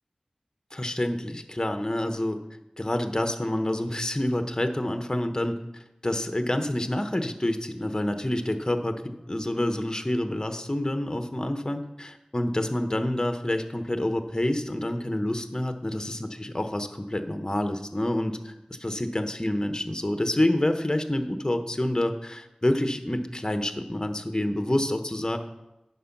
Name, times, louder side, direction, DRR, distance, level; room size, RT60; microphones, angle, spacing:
voice 1, 0.7-2.4 2.8-5.5 6.0-25.4, left 1 dB, 30° left, 7 dB, 0.9 m, -28 dB
9.3 x 6.1 x 5.9 m, 0.96 s
wide cardioid pair, 45°, 2 cm